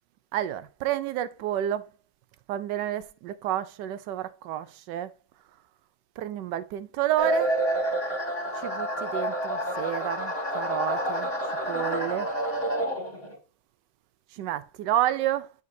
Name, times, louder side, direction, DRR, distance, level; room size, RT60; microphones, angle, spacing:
voice 1, 0.3-1.9 2.5-5.1 6.2-7.5 8.6-11.3 11.7-12.3 14.3-15.5, right 12 dB, 70° right, 1.1 m, -30 dB
sound 1, 7.2-13.4, right 1 dB, 30° left, 1.8 m, -28 dB
9.4 x 5.1 x 2.6 m
omnidirectional pair, 2.1 m